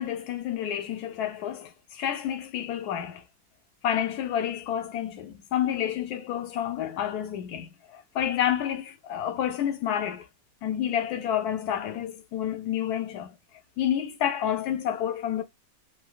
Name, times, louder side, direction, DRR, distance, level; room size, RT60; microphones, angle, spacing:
voice 1, 0.0-3.2 3.8-10.3 10.6-13.3 13.8-15.4, left 10 dB, 75° left, 1.1 m, -29 dB
3.2 x 2.5 x 2.3 m
omnidirectional pair, 1.7 m